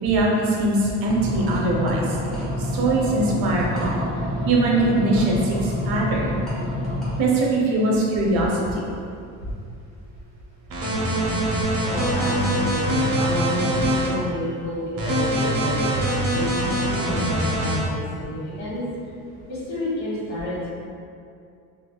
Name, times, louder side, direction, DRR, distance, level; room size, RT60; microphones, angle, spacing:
voice 1, 0.0-2.2 2.6-4.0 4.4-6.3 7.2-8.8 13.8-13.9, right 2 dB, 85° right, -3 dB, 0.7 m, -22 dB
sound 1, 1.0-7.2, left 1 dB, ahead, 1.0 m, -28 dB
sound 2, 10.7-14.1 15.0-17.8, right 1 dB, 40° right, 0.7 m, -23 dB
voice 2, 11.9-18.8 19.5-20.7, left 1 dB, 50° left, -7 dB, 1.2 m, -30 dB
3.3 x 2.4 x 2.2 m, 2.4 s
cardioid pair, 115°, 35 cm